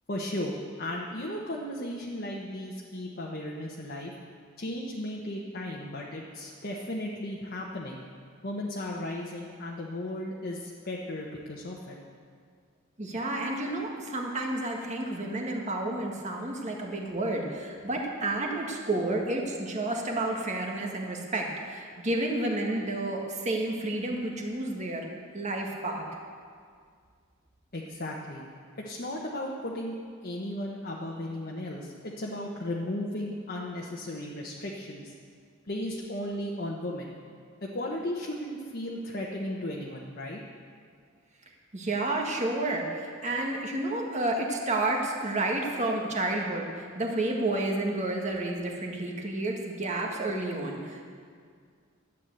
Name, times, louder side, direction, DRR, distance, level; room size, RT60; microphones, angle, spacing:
voice 1, 0.1-4.1 4.6-8.0 8.4-12.0 27.7-28.4 28.8-30.0 30.2-35.1 35.7-37.1 37.6-40.4, left 1 dB, 45° left, -3 dB, 1.1 m, -35 dB
voice 2, 13.0-25.1 25.3-26.1 41.7-51.0, right 2 dB, 35° right, 0 dB, 1.7 m, -30 dB
12.0 x 8.4 x 7.9 m, 2.1 s
head